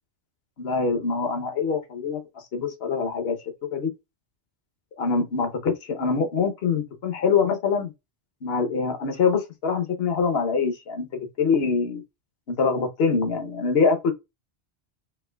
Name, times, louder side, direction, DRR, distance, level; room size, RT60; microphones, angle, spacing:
voice 1, 0.6-3.4 3.7-3.9 5.0-7.9 8.4-12.0 12.5-14.1, left 5 dB, 70° left, 1.1 m, -24 dB
4.6 x 2.5 x 2.2 m
omnidirectional pair, 1.1 m